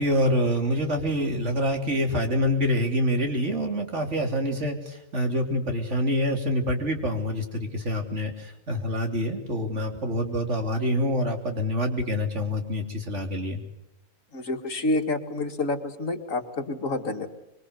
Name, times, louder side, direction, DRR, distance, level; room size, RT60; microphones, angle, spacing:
voice 1, 0.0-13.6, equal, 55° right, 4 dB, 3.5 m, -26 dB
voice 2, 14.3-17.3, left 2 dB, 65° left, 5 dB, 2.4 m, -28 dB
25.5 x 23.0 x 8.1 m, 0.87 s
omnidirectional pair, 1.4 m